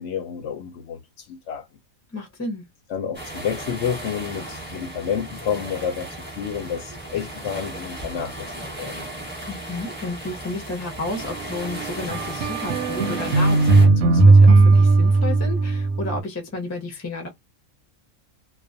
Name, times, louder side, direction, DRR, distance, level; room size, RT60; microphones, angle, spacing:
voice 1, 0.0-1.6 2.9-6.1 6.4-8.5 8.8-9.0, left 7 dB, 65° left, 0.7 m, -29 dB
voice 2, 2.1-2.6 9.4-17.3, left 2 dB, 20° left, 0.4 m, -32 dB
sound 1, 3.1-13.9, right 1 dB, 10° right, 0.9 m, -35 dB
sound 2, 12.1-16.2, right 3 dB, 70° right, 0.9 m, -16 dB
2.3 x 2.2 x 2.5 m
omnidirectional pair, 1.5 m